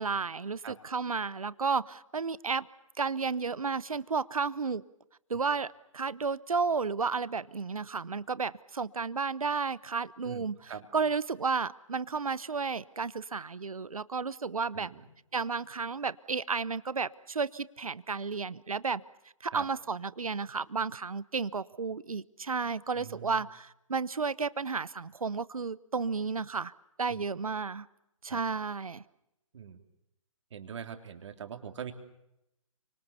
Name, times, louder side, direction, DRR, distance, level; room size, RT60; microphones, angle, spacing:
voice 1, 0.0-2.7 3.0-4.8 5.3-14.9 15.3-19.0 19.4-26.7 27.0-27.9 28.2-29.0, right 5 dB, 80° right, 0.9 m, -32 dB
voice 2, 10.2-10.9 14.7-15.0 19.5-19.7 22.9-23.4 27.1-27.2 28.3-28.4 29.5-29.8 30.5-31.9, right 7 dB, 55° right, 3.2 m, -43 dB
29.0 x 25.5 x 6.9 m
figure-of-eight pair, 135°, 18 cm